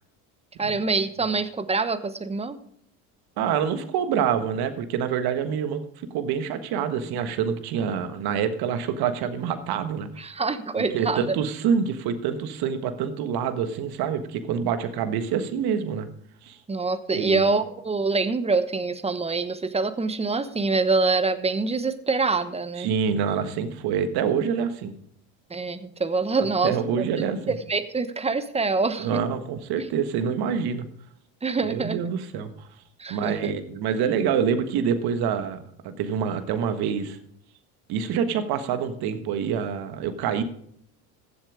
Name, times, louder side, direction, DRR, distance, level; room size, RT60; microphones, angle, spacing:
voice 1, 0.6-2.6 10.2-11.2 16.7-22.9 25.5-26.7 27.5-29.2 31.4-32.0 33.0-33.3, right 4 dB, 15° right, 12 dB, 1.1 m, -25 dB
voice 2, 3.4-5.8 6.1-10.3 10.7-16.1 16.4-16.6 17.1-17.5 22.8-24.9 26.6-27.6 29.0-30.9 31.6-32.7 33.1-37.2 37.9-40.4, right 7 dB, 60° right, 10 dB, 1.5 m, -26 dB
15.5 x 7.3 x 5.0 m, 0.67 s
supercardioid pair, 95°, 41 cm